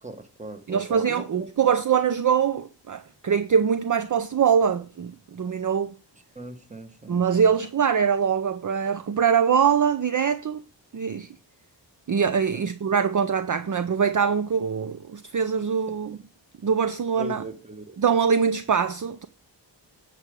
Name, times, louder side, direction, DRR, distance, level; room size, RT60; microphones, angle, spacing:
voice 1, 0.0-1.7 6.3-7.5 12.5-12.7 15.9-16.0 17.1-18.0, right 2 dB, 15° right, 1.3 m, -40 dB
voice 2, 0.7-6.0 7.1-10.6 10.9-11.3 12.1-16.2 16.6-17.4 18.0-19.3, right 7 dB, 45° right, 0.6 m, -23 dB
9.6 x 5.0 x 6.7 m
wide cardioid pair, 120°, 44 cm